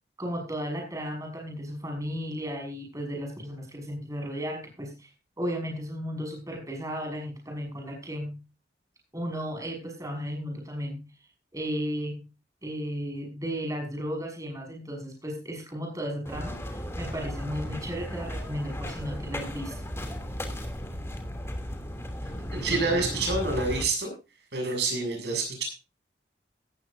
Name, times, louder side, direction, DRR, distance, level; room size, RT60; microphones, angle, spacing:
voice 1, 0.2-5.1 5.4-8.4 9.1-11.1 11.5-12.3 12.6-19.8, equal, 20° right, 1 dB, 5.9 m, -34 dB
sound 1, 16.3-23.8, equal, 15° left, 2.9 m, -35 dB
voice 2, 22.5-24.1 24.5-25.6, right 3 dB, 75° right, 3 dB, 7.2 m, -27 dB
17.0 x 14.5 x 2.7 m, 0.30 s
head